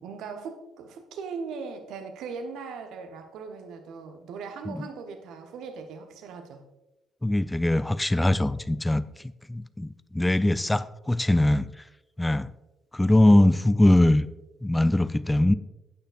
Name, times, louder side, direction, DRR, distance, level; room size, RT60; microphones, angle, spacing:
voice 1, 0.0-6.6, right 5 dB, 60° right, 6 dB, 1.1 m, -39 dB
voice 2, 7.2-9.0 9.5-11.7 12.2-12.5 12.9-14.3 14.6-15.5, left 1 dB, 10° left, 15 dB, 0.4 m, -21 dB
12.5 x 8.9 x 2.5 m, 1.0 s
figure-of-eight pair, 45°, 0 cm